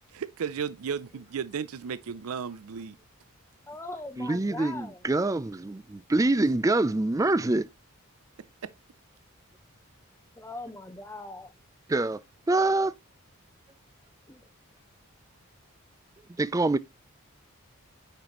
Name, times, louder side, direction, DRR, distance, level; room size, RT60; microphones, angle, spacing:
voice 1, 0.1-3.0 8.6-8.7, right 7 dB, 80° right, 0.4 m, -34 dB
voice 2, 3.7-5.0 10.4-11.5 14.3-14.4, left 2 dB, 10° left, 0.7 m, -40 dB
voice 3, 4.2-7.7 11.9-12.2 12.5-12.9 16.4-16.8, right 2 dB, 15° right, 0.3 m, -25 dB
9.1 x 5.1 x 2.9 m
head